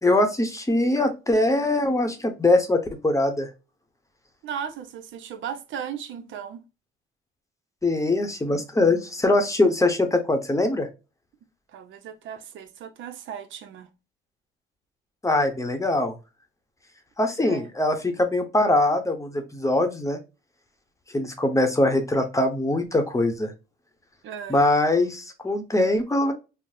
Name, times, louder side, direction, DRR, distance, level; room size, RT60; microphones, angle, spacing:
voice 1, 0.0-3.5 7.8-10.9 15.2-16.2 17.2-20.2 21.1-23.5 24.5-26.3, left 2 dB, 15° left, 0.8 m, -22 dB
voice 2, 4.4-6.6 11.7-13.9 17.4-17.7 24.2-24.7, right 8 dB, 75° right, 0.6 m, -36 dB
3.9 x 2.0 x 2.5 m
cardioid pair, 90°, 20 cm